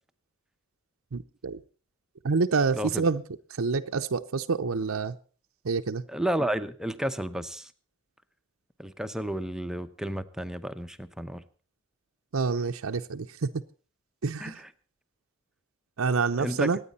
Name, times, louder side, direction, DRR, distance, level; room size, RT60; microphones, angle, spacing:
voice 1, 1.1-1.6 2.2-3.2 3.5-5.2 5.6-6.0 12.3-13.5 14.2-14.6 16.0-16.8, right 4 dB, 85° right, 6 dB, 0.7 m, -27 dB
voice 2, 2.7-3.1 6.1-7.7 8.8-11.4 14.4-14.7 16.4-16.7, right 1 dB, 5° right, 9 dB, 0.7 m, -32 dB
25.0 x 9.4 x 4.1 m, 0.39 s
head